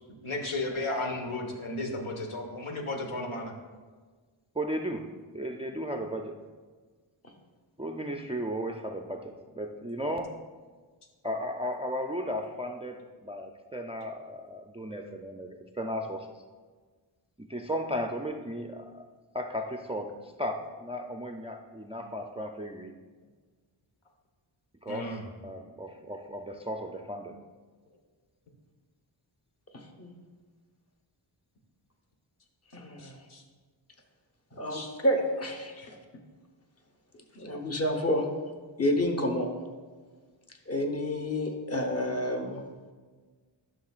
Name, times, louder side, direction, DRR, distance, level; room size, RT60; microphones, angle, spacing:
voice 1, 0.2-3.6 24.9-25.2 33.0-33.4 34.7-34.9 35.8-35.9, left 2 dB, 80° left, 2 dB, 1.3 m, -34 dB
voice 2, 4.6-5.1 5.3-6.4 7.8-10.3 11.2-16.3 17.4-19.0 19.3-22.9 24.8-27.4, equal, 15° right, 3 dB, 0.3 m, -35 dB
voice 3, 29.7-30.1 32.7-33.2 34.5-36.0 37.3-38.3 38.8-39.5 40.7-42.6, left 1 dB, 30° left, 4 dB, 1.0 m, -29 dB
11.5 x 6.3 x 2.4 m, 1.4 s
wide cardioid pair, 115°, 48 cm